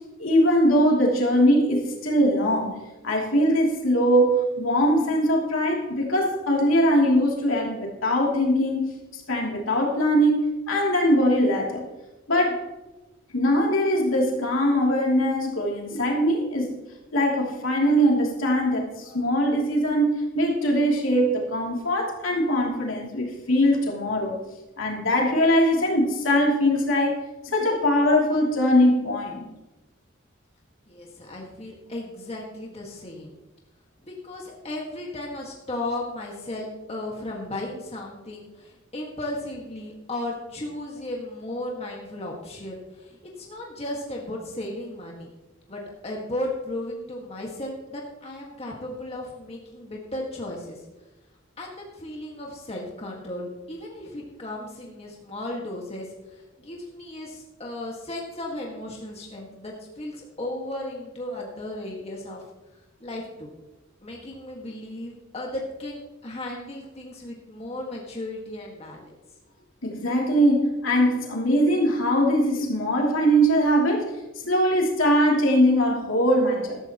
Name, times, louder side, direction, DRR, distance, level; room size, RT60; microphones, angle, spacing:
voice 1, 0.2-2.8 3.0-11.9 12.3-12.6 13.3-16.7 17.1-24.4 24.8-27.2 27.4-29.5 69.8-74.1 74.4-76.8, equal, 75° left, -2 dB, 3.0 m, -21 dB
voice 2, 30.9-33.3 34.0-45.3 45.7-50.8 51.6-62.4 63.0-63.5 64.0-69.1, left 1 dB, 30° left, -2 dB, 1.8 m, -35 dB
14.0 x 12.5 x 3.0 m, 1.1 s
head